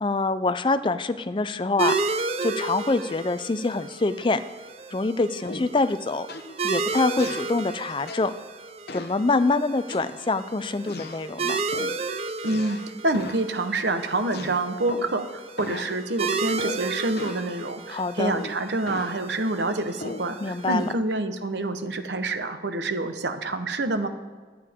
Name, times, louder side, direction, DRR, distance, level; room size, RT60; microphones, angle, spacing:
voice 1, 0.0-4.4 4.9-6.3 6.6-8.3 8.9-11.6 17.9-18.3 20.4-20.9, left 3 dB, 30° left, 13 dB, 0.4 m, -25 dB
sound 1, 1.8-20.9, right 4 dB, 35° right, 0.5 m, -33 dB
sound 2, 5.4-5.8 6.3-6.6 7.2-7.5 8.1-8.4 8.9-9.2 9.9-10.4 10.9-11.3 11.7-12.0 12.4-12.9 13.1-13.5 14.3-15.2 15.6-16.0 16.6-16.9 17.2-17.5 18.3-19.2 20.0-20.3, left 2 dB, 60° left, 0.8 m, -38 dB
voice 2, 12.4-12.8 13.0-24.1, right 2 dB, 80° right, 8 dB, 1.1 m, -27 dB
23.5 x 8.4 x 3.6 m, 1.4 s
head